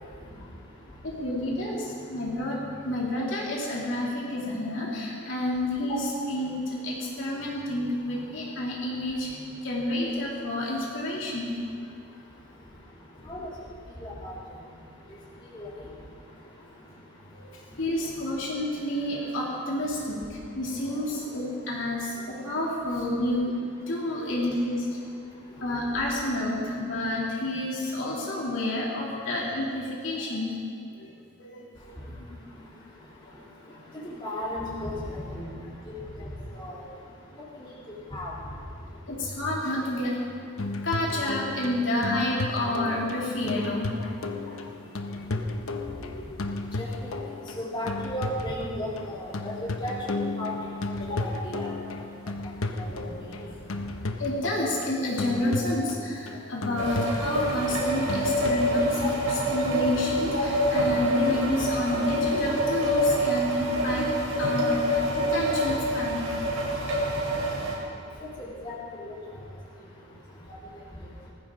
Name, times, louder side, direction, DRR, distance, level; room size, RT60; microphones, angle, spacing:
voice 1, 1.0-11.5 17.3-17.4 17.8-23.6 23.9-24.9 25.6-30.6 30.9-31.1 31.4-31.6 32.3-32.4 33.3-33.4 36.7-36.8 39.1-40.3 40.8-44.2 44.5-44.6 45.0-46.7 51.0-51.3 51.6-51.7 52.9-53.0 53.7-66.2, left 1 dB, 60° left, -5 dB, 2.9 m, -30 dB
voice 2, 14.0-14.3 15.5-15.7 34.0-35.5 35.9-36.0 36.5-36.8 37.6-37.7 38.1-38.3 46.8-47.1 47.6-50.5 50.8-51.7 52.8-53.3 68.4-68.7 69.0-69.2, left 1 dB, 20° left, -7 dB, 3.3 m, -35 dB
sound 1, 40.6-58.8, left 2 dB, 75° left, 1.0 m, -34 dB
sound 2, 56.8-67.7, equal, 90° right, 3.9 m, -26 dB
19.5 x 15.0 x 3.8 m, 2.4 s
head